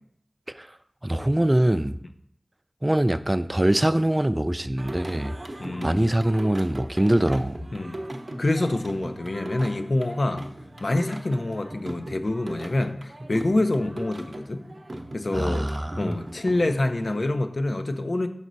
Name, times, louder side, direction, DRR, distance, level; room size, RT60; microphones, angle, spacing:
voice 1, 1.0-1.9 2.8-5.3 5.8-7.6 15.3-16.2, right 1 dB, 25° right, 13 dB, 0.4 m, -23 dB
Singing, 4.8-17.2, right 1 dB, 50° right, 0.8 m, -39 dB
voice 2, 5.6-6.2 7.7-8.0 8.4-10.4 10.8-14.6 15.1-15.7 16.0-18.3, left 2 dB, 65° left, 7 dB, 0.6 m, -26 dB
6.2 x 5.3 x 4.0 m, 0.68 s
wide cardioid pair, 50°, 0 cm